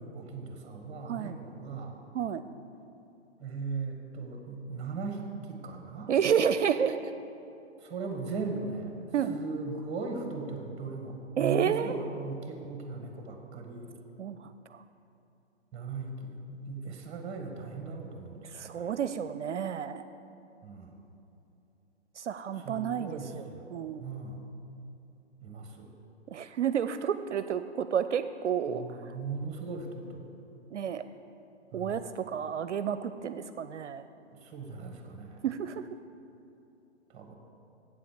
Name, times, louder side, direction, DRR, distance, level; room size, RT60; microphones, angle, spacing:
voice 1, 0.0-2.0 3.4-6.1 7.8-9.0 9.3-13.9 15.7-18.9 20.6-21.0 22.6-23.7 24.0-24.4 25.4-25.9 28.7-30.3 31.7-32.0 34.3-35.4 37.1-37.4, right 4 dB, 15° right, 3 dB, 1.3 m, -38 dB
voice 2, 1.1-1.4 2.1-2.4 6.1-7.1 9.1-9.4 11.4-11.9 14.2-14.8 18.5-20.0 22.2-24.0 26.3-29.1 30.7-31.0 31.7-34.0 35.4-35.9, right 8 dB, 75° right, 11 dB, 0.5 m, -30 dB
8.1 x 7.6 x 6.7 m, 2.9 s
figure-of-eight pair, 125°, 36 cm